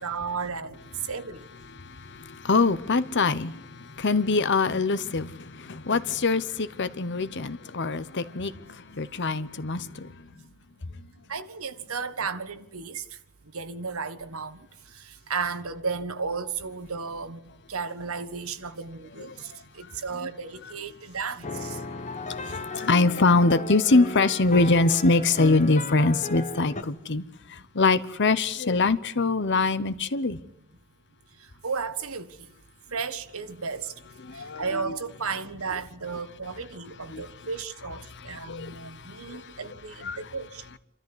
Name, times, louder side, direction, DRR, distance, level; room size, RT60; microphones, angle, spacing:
voice 1, 0.0-1.4 11.3-13.0 13.5-14.6 15.0-17.4 17.7-21.8 31.6-32.4 32.9-33.9 34.3-40.6, right 5 dB, 70° right, 1.5 m, -34 dB
voice 2, 1.8-10.1 22.3-27.2 27.5-30.4 34.2-34.6 37.1-37.2 38.2-39.5 40.0-40.2, left 3 dB, 50° left, 1.0 m, -24 dB
sound 1, 21.4-26.8, left 3 dB, 30° left, 1.2 m, -35 dB
28.0 x 13.5 x 9.8 m
head